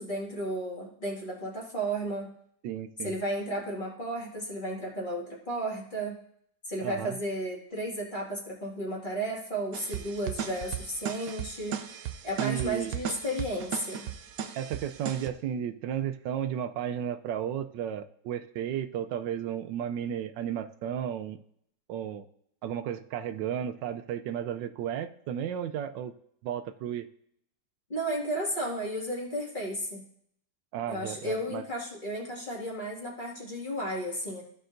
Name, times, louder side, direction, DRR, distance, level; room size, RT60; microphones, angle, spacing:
voice 1, 0.0-2.3 3.0-6.1 6.6-11.8 12.2-14.1 27.9-30.0 30.9-34.4, right 1 dB, 25° left, -4 dB, 2.2 m, -33 dB
voice 2, 2.6-3.1 6.8-7.2 12.4-12.9 14.6-21.4 21.9-22.2 22.6-26.1 26.4-27.1 30.7-31.6, right 9 dB, 85° right, 9 dB, 1.3 m, -33 dB
sound 1, 9.7-15.3, right 9 dB, 65° right, 1.0 m, -37 dB
15.0 x 5.5 x 2.6 m, 0.68 s
omnidirectional pair, 1.9 m